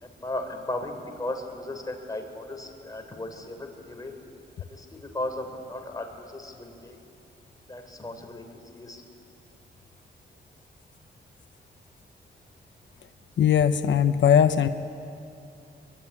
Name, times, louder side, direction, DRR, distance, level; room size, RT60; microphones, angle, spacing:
voice 1, 0.0-4.1 4.6-7.0 7.7-8.4 8.7-9.0, left 1 dB, 20° left, 3 dB, 3.5 m, -36 dB
voice 2, 13.4-14.7, left 8 dB, 85° left, 9 dB, 0.8 m, -19 dB
24.0 x 23.0 x 9.7 m, 2.6 s
wide cardioid pair, 135°, 19 cm